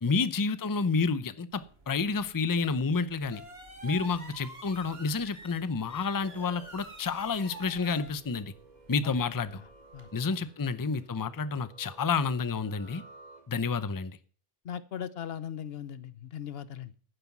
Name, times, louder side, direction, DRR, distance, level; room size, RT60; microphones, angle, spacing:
voice 1, 0.0-3.4 3.8-8.5 8.9-9.6 10.1-13.0 13.5-14.2, left 4 dB, 25° left, 14 dB, 0.6 m, -30 dB
sound 1, 1.5-10.1, right 2 dB, 75° right, 2.6 m, -49 dB
sound 2, 5.7-13.9, right 2 dB, 45° right, 2.0 m, -56 dB
voice 2, 14.6-16.9, left 9 dB, 75° left, 15 dB, 1.0 m, -39 dB
11.5 x 9.7 x 6.0 m, 0.43 s
omnidirectional pair, 1.0 m